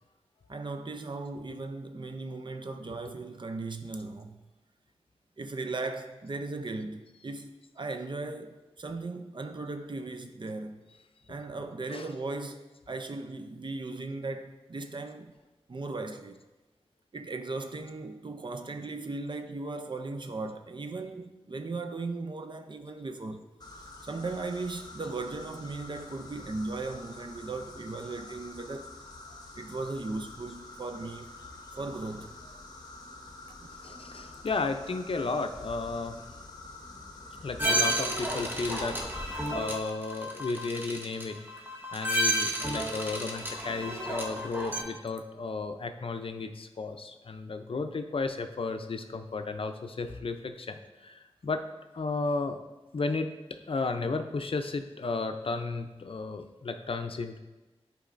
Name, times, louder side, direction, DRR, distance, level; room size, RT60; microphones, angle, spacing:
voice 1, 0.5-4.4 5.4-10.8 11.3-15.3 15.7-16.4 17.1-23.5 24.0-28.9 29.6-31.4 31.7-32.4 33.6-33.7, right 3 dB, 50° right, 0.5 m, -37 dB
sound 1, 23.6-39.5, left 2 dB, 40° left, 0.8 m, -47 dB
voice 2, 33.8-36.2 37.4-41.4 41.9-51.6 51.9-52.6 52.9-57.4, left 3 dB, 60° left, 0.5 m, -34 dB
sound 2, 37.6-44.8, right 1 dB, 20° right, 1.1 m, -31 dB
10.0 x 4.6 x 2.6 m
wide cardioid pair, 60°, 11 cm